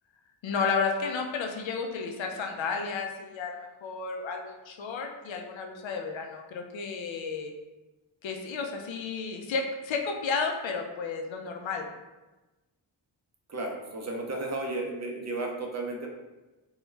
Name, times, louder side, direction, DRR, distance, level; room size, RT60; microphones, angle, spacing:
voice 1, 0.4-7.5 8.2-11.8, left 5 dB, 70° left, 3 dB, 0.5 m, -32 dB
voice 2, 13.5-16.1, right 2 dB, 35° right, 1 dB, 0.5 m, -33 dB
2.3 x 2.1 x 3.1 m, 1.1 s
cardioid pair, 55°, 49 cm